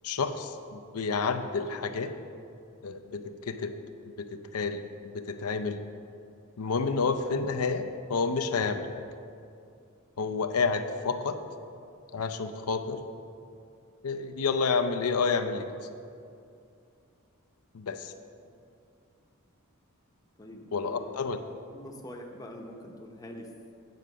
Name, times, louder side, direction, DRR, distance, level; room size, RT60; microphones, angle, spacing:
voice 1, 0.0-2.1 2.8-3.7 4.5-4.8 5.1-5.8 6.6-9.0 10.2-11.4 12.1-13.0 14.0-15.6 17.7-18.1 20.7-21.4, left 4 dB, 80° left, 7 dB, 0.6 m, -29 dB
voice 2, 20.4-21.2 21.7-23.7, left 1 dB, 15° left, 1 dB, 0.8 m, -44 dB
9.3 x 4.9 x 6.7 m, 2.4 s
head